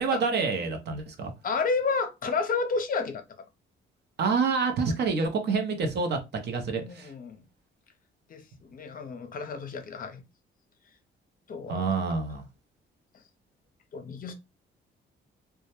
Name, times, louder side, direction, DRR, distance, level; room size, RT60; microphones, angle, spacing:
voice 1, 0.0-1.3 4.2-7.1 11.7-12.4, right 4 dB, 60° right, 0.6 m, -27 dB
voice 2, 1.4-3.2 6.8-7.4 8.3-10.2 11.5-11.9 13.9-14.3, left 4 dB, 45° left, 0.6 m, -31 dB
2.2 x 2.1 x 2.8 m
cardioid pair, 90°, 20 cm